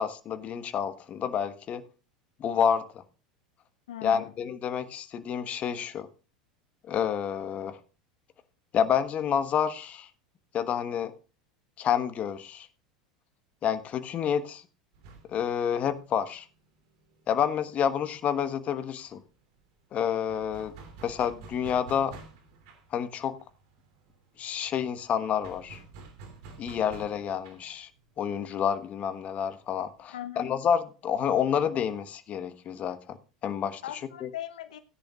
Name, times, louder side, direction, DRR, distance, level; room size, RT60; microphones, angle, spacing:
voice 1, 0.0-1.8 2.4-3.0 4.0-6.1 6.9-7.8 8.7-10.1 10.5-11.1 11.8-12.7 13.6-14.6 15.3-16.5 17.3-19.2 19.9-20.7 21.0-22.2 22.9-23.4 24.4-25.8 26.6-27.9 28.2-33.2 33.4-33.8 34.2-34.3, left 8 dB, 40° left, 1.2 m, -29 dB
voice 2, 3.9-4.3 30.1-30.5 33.8-34.8, left 12 dB, 75° left, 0.8 m, -39 dB
sound 1, 14.9-18.3 18.6-18.7 19.0-30.0, right 4 dB, 60° right, 2.9 m, -51 dB
16.5 x 10.5 x 2.4 m
hypercardioid pair, 85°, 4 cm